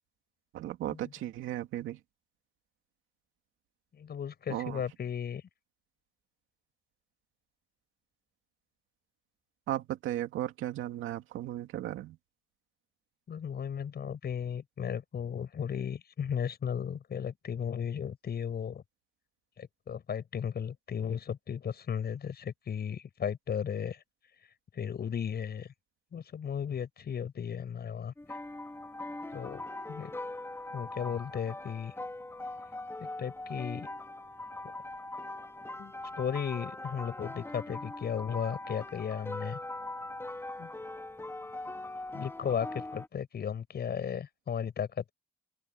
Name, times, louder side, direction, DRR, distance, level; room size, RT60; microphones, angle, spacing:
voice 1, 0.5-2.0 4.5-4.8 9.7-12.2, right 13 dB, 85° right, 2.5 m, -35 dB
voice 2, 3.9-5.4 13.3-18.8 19.6-24.0 24.7-25.7 26.1-28.1 29.3-30.1 30.7-31.9 33.0-33.9 35.8-39.6 40.6-40.7 42.1-45.1, left 7 dB, 55° left, 8.0 m, -35 dB
sound 1, 28.2-43.1, left 2 dB, 10° left, 2.8 m, -41 dB
open air
cardioid pair, 90°, 20 cm